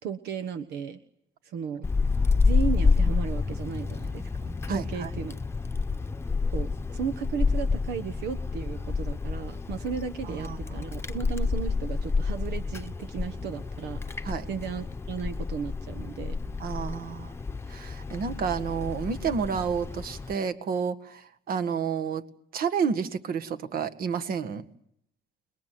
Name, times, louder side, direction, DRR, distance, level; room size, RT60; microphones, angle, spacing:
voice 1, 0.0-1.0 1.4-1.9 2.4-5.3 6.5-16.4, right 6 dB, 80° right, 10 dB, 1.3 m, -35 dB
Wind, 1.8-20.3, left 4 dB, 15° left, 1.0 m, -29 dB
voice 2, 4.7-5.1 10.3-10.9 14.2-14.5 16.6-17.3 17.7-22.3 22.5-24.7, right 6 dB, 60° right, 10 dB, 1.8 m, -30 dB
28.5 x 21.5 x 9.5 m, 0.77 s
cardioid pair, 110°, 17 cm